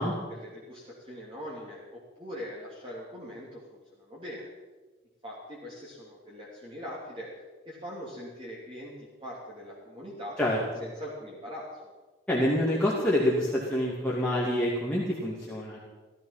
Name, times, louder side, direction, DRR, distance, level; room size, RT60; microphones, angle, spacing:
voice 1, 0.3-4.5 5.2-7.3 7.6-10.4 10.8-11.9, equal, 25° right, -6 dB, 3.0 m, -42 dB
voice 2, 12.3-15.8, left 1 dB, 5° left, -7 dB, 2.4 m, -27 dB
16.0 x 15.0 x 5.8 m, 1.3 s
head